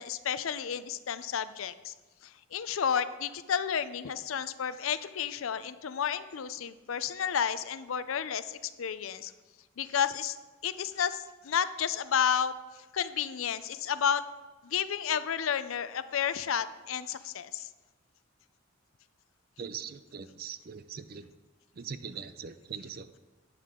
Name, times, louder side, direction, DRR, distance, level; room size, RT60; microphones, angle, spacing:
voice 1, 0.0-1.9 2.2-9.3 9.8-10.4 10.6-12.5 12.9-14.2 14.6-17.7, left 8 dB, 80° left, 13 dB, 0.5 m, -31 dB
voice 2, 19.6-21.3 21.8-23.2, right 6 dB, 50° right, 12 dB, 0.5 m, -41 dB
11.0 x 8.6 x 3.7 m, 1.2 s
head